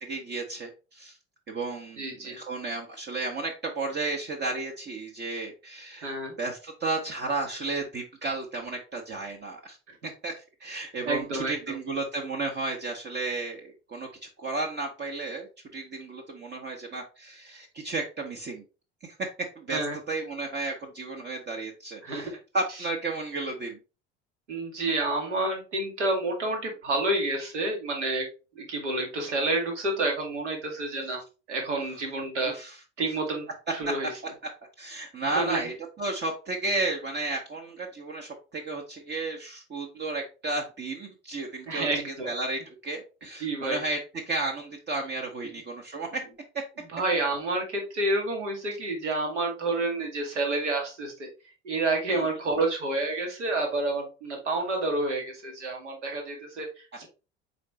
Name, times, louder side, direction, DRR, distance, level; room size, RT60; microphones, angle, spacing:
voice 1, 0.0-1.2 1.5-9.8 10.0-14.1 14.4-18.6 19.0-19.3 19.6-19.8 20.1-22.3 22.5-23.8 32.4-32.8 34.8-44.0 44.3-46.2 52.1-52.2, right 3 dB, 30° right, 1 dB, 0.9 m, -33 dB
voice 2, 2.0-2.4 6.0-6.3 9.9-10.0 11.0-11.8 19.7-20.0 22.0-22.4 24.5-28.3 28.5-31.2 31.5-32.5 33.0-34.1 35.3-35.7 41.7-42.3 43.4-43.8 46.9-51.3 51.6-57.1, right 2 dB, 80° right, 2 dB, 1.4 m, -29 dB
4.2 x 4.0 x 3.1 m, 0.31 s
figure-of-eight pair, 60°, 35 cm